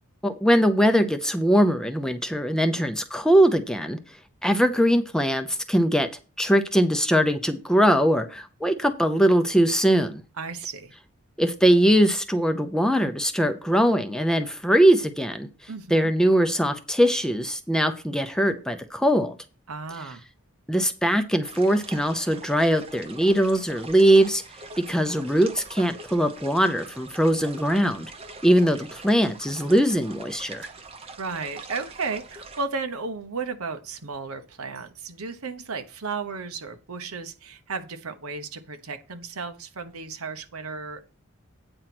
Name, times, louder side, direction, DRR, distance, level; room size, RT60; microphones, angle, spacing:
voice 1, 0.2-4.0 4.4-6.1 6.4-10.2 11.4-19.4 20.7-24.4 24.8-28.1 28.4-30.7, equal, 5° left, 0.6 m, -21 dB
voice 2, 10.4-10.9 15.7-16.1 19.7-20.2 31.2-41.0, right 4 dB, 80° right, 1.0 m, -34 dB
sound 1, 21.4-32.6, right 3 dB, 25° right, 0.8 m, -43 dB
8.9 x 4.6 x 6.0 m
head